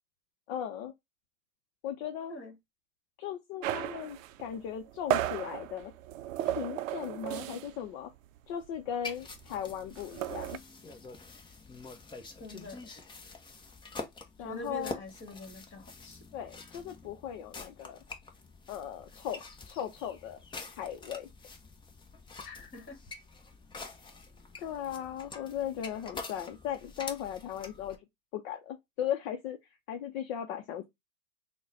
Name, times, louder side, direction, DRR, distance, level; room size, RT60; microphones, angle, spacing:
voice 1, 0.5-0.9 1.8-2.3 3.2-5.9 6.4-8.1 8.5-10.6 14.4-15.0 16.3-18.0 18.7-20.4 20.7-21.3 24.6-28.0 28.3-30.8, left 9 dB, 50° left, 0.7 m, -37 dB
sound 1, 3.6-7.9 8.2-8.4 8.6-10.6, right 12 dB, 70° right, 0.5 m, -35 dB
sound 2, 9.0-28.0, left 3 dB, 10° left, 0.6 m, -47 dB
voice 2, 12.4-12.9 14.4-16.2 22.4-23.0, left 1 dB, 30° left, 1.6 m, -44 dB
3.8 x 2.2 x 3.8 m
hypercardioid pair, 115°, 40 cm